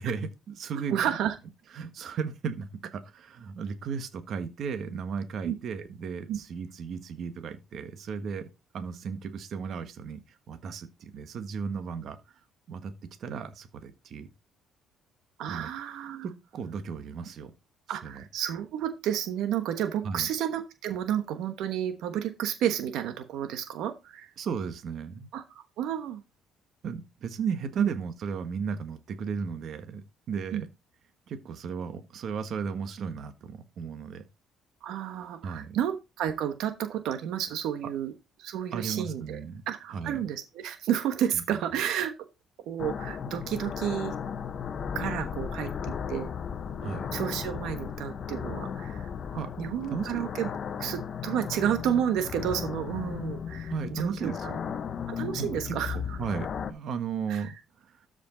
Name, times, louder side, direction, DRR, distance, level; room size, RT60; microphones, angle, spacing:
voice 1, 0.0-1.1 1.7-8.5 8.7-12.4 12.7-14.3 15.5-15.7 16.2-17.5 18.0-18.2 20.0-20.3 24.4-25.3 26.8-30.7 31.3-34.2 35.4-35.8 38.7-39.6 39.9-40.2 41.3-41.6 46.8-47.1 49.3-49.5 49.8-50.3 53.7-54.6 55.4-58.0, right 6 dB, 50° right, 1.4 m, -35 dB
voice 2, 0.9-1.4 5.4-5.5 6.3-6.4 15.4-16.3 17.9-24.3 25.3-26.2 27.8-27.9 30.5-30.6 34.8-38.1 38.4-39.4 39.7-42.1 42.7-44.1 44.9-46.3 46.8-49.1 49.6-50.5 50.8-54.5 55.1-56.2 57.3-57.5, right 10 dB, 75° right, 1.2 m, -31 dB
sound 1, 42.8-56.7, left 7 dB, 40° left, 0.8 m, -35 dB
13.0 x 5.2 x 3.9 m
cardioid pair, 145°, 0 cm